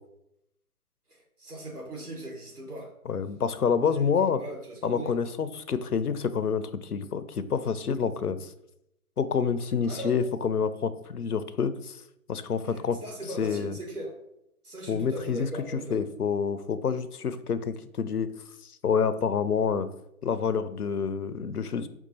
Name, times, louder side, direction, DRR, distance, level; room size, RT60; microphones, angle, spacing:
voice 1, 1.1-2.9 3.9-5.1 9.8-10.1 12.6-14.1 14.6-16.0, right 1 dB, 85° right, -1 dB, 1.6 m, -39 dB
voice 2, 3.1-4.4 4.8-8.5 9.2-12.0 12.3-13.0 13.4-13.8 14.9-15.5 15.9-18.3 18.8-19.9 20.2-21.9, left 6 dB, 90° left, 12 dB, 0.5 m, -28 dB
4.6 x 2.3 x 4.1 m, 0.80 s
figure-of-eight pair, 135°, 44 cm